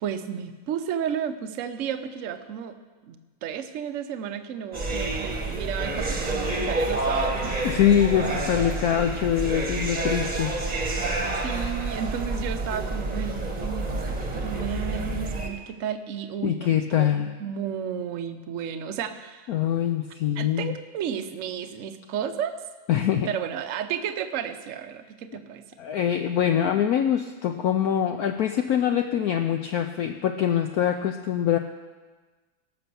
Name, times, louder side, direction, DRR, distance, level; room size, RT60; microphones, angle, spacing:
voice 1, 0.0-2.8 3.0-7.6 11.3-19.5 20.4-22.6 23.3-25.6, right 8 dB, 60° right, 9 dB, 0.8 m, -33 dB
sound 1, 4.7-15.5, right 2 dB, 25° right, 1.1 m, -28 dB
voice 2, 7.6-10.5 16.4-17.3 19.5-20.7 22.9-23.3 25.8-31.6, left 10 dB, 75° left, 6 dB, 0.9 m, -24 dB
17.5 x 6.1 x 6.9 m, 1.3 s
omnidirectional pair, 2.1 m